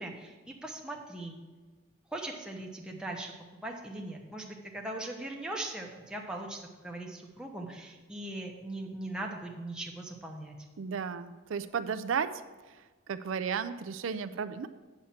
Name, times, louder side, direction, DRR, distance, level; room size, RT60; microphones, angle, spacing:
voice 1, 0.0-1.4 2.1-3.3 3.6-10.6, right 1 dB, 5° right, -1 dB, 0.9 m, -40 dB
voice 2, 10.8-12.4 12.7-14.7, right 6 dB, 85° right, 11 dB, 0.4 m, -34 dB
8.8 x 7.2 x 4.4 m, 1.3 s
head